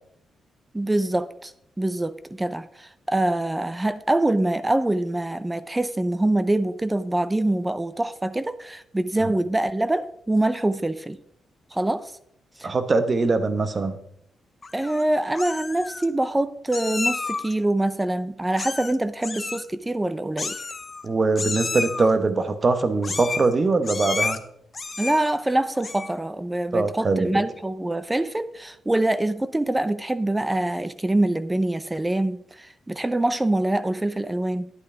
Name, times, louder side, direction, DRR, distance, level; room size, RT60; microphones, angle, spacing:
voice 1, 0.7-11.2 11.7-12.1 12.6-12.7 14.7-20.6 25.0-34.7, right 1 dB, 15° right, 0.5 m, -25 dB
voice 2, 12.6-14.0 21.0-24.4 26.7-27.3, right 3 dB, 35° right, 1.1 m, -22 dB
Meow, 14.6-15.0 15.4-16.1 16.7-17.5 18.6-19.0 19.2-19.7 20.4-21.1 21.4-22.1 23.0-23.5 23.8-24.4 24.7-25.3 25.8-26.2, left 4 dB, 30° left, 0.8 m, -31 dB
11.0 x 8.4 x 3.4 m
cardioid pair, 95°, 0 cm